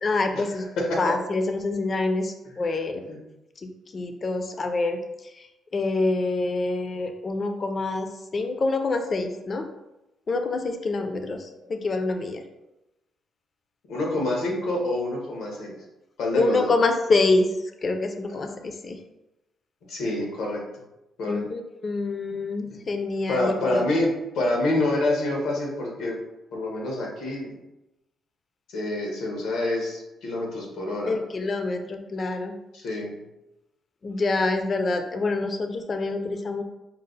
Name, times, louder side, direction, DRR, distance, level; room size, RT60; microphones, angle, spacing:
voice 1, 0.0-0.6 1.0-3.0 3.6-5.0 5.7-9.7 10.3-12.4 16.3-17.5 17.8-19.0 21.3-23.8 31.1-32.5 34.0-36.6, left 3 dB, 35° left, 6 dB, 0.4 m, -26 dB
voice 2, 0.8-1.1 3.0-3.2 13.9-15.7 16.2-16.7 19.9-20.6 21.2-21.4 22.7-22.8 23.3-26.1 26.5-27.6 28.7-31.2 32.7-33.2, left 1 dB, 85° left, -1 dB, 1.3 m, -27 dB
5.3 x 2.0 x 3.9 m, 0.95 s
cardioid pair, 135°, 0 cm